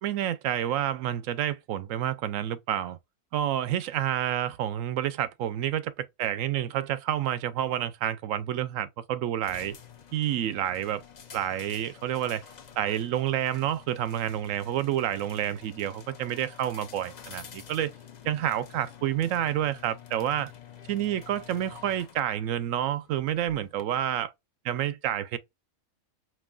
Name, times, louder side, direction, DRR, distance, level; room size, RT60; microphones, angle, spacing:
voice 1, 0.0-3.0 3.3-9.8 10.1-11.0 11.3-12.4 12.8-17.9 18.2-20.5 20.9-24.3 24.6-25.4, right 11 dB, 80° right, 1.0 m, -29 dB
sound 1, 9.4-23.8, left 8 dB, 45° left, 0.6 m, -49 dB
5.3 x 3.1 x 2.3 m
omnidirectional pair, 1.4 m